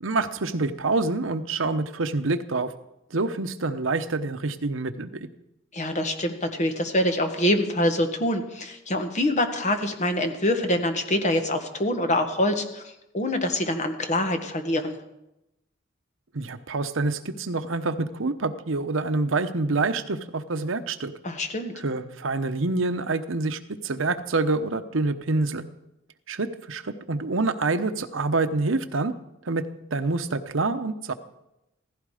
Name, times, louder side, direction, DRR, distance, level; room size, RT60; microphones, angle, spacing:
voice 1, 0.0-2.7 3.1-5.1 16.3-21.1 21.7-25.6 26.3-29.1 29.4-31.1, right 3 dB, 80° right, 10 dB, 0.9 m, -27 dB
voice 2, 5.7-15.0 21.2-21.7, left 1 dB, 40° left, 6 dB, 1.6 m, -25 dB
16.0 x 15.5 x 5.0 m, 0.90 s
head